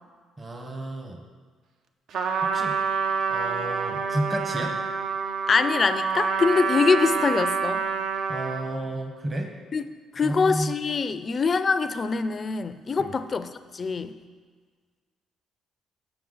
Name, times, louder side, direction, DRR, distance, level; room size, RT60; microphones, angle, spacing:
voice 1, 0.4-1.2 2.4-2.8 3.3-4.8 8.3-9.5 10.2-10.8 13.0-13.1, right 1 dB, 30° right, 4 dB, 0.9 m, -31 dB
Trumpet, 2.1-8.7, right 5 dB, 65° right, 0.5 m, -27 dB
voice 2, 5.5-7.8 9.7-9.9 10.1-13.5 13.7-14.1, left 4 dB, 40° left, 11 dB, 0.4 m, -24 dB
6.9 x 5.6 x 3.9 m, 1.6 s
cardioid pair, 80°, 0 cm